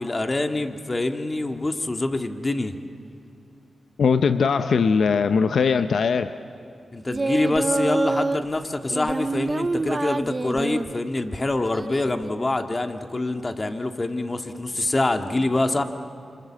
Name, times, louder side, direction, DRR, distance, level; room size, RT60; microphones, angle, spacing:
voice 1, 0.0-2.7 6.9-15.8, left 2 dB, 35° left, 6 dB, 1.9 m, -25 dB
voice 2, 4.0-6.3, left 5 dB, 80° left, 10 dB, 0.7 m, -20 dB
Singing, 7.1-8.4 8.9-10.9 11.7-12.3, right 3 dB, 35° right, 0.6 m, -26 dB
28.5 x 26.5 x 7.6 m, 2.7 s
cardioid pair, 50°, 0 cm